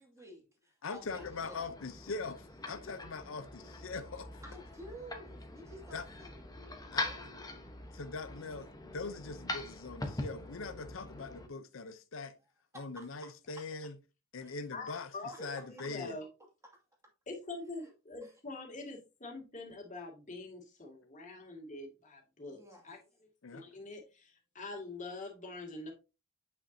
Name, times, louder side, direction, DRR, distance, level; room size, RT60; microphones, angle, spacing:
voice 1, 0.0-1.7 4.4-6.4 6.9-7.2 12.7-13.1 14.4-14.5 15.3-15.7 17.8-17.9 18.2-18.3 22.5-22.9, right 1 dB, 15° right, 2.2 m, -52 dB
voice 2, 0.8-4.3 5.9-6.0 6.9-7.1 7.9-12.3 12.7-13.9 14.3-15.1 15.4-16.2 23.4-23.6, left 4 dB, 85° left, 0.7 m, -42 dB
sound 1, 0.9-11.5, left 2 dB, 20° left, 1.1 m, -43 dB
voice 3, 14.7-16.3 17.3-23.0 23.5-25.9, left 2 dB, 40° left, 2.3 m, -45 dB
8.4 x 5.9 x 2.7 m
head